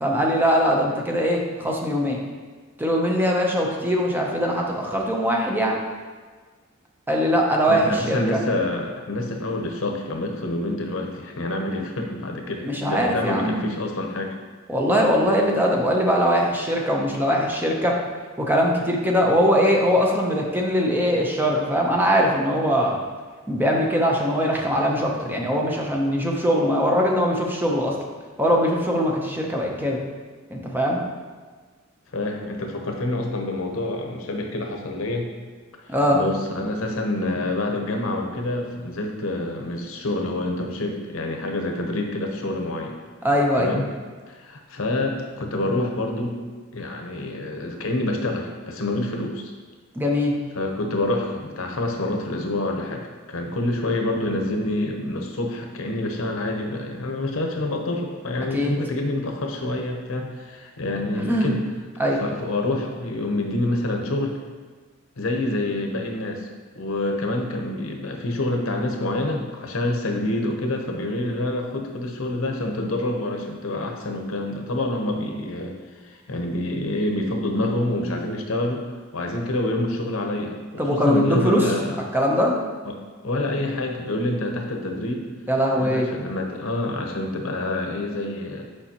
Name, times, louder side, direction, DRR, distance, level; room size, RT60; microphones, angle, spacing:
voice 1, 0.0-2.2 2.8-5.8 7.1-8.4 12.6-13.7 14.7-18.0 18.4-23.0 23.5-28.0 28.4-30.0 30.5-31.0 35.9-36.2 43.2-43.7 49.9-50.4 58.5-58.7 61.1-61.5 62.0-62.2 80.8-81.7 82.1-82.6 85.5-86.1, equal, 10° right, -1 dB, 0.6 m, -21 dB
voice 2, 7.7-14.3 32.1-35.3 35.9-43.0 43.6-43.9 44.3-46.4 46.7-49.5 50.5-61.6 62.2-64.4 65.2-66.5 66.7-75.7 76.0-82.0 82.9-83.0 83.2-85.3 85.7-88.6, left 1 dB, 75° left, 2 dB, 0.8 m, -27 dB
6.9 x 4.7 x 2.9 m, 1.5 s
head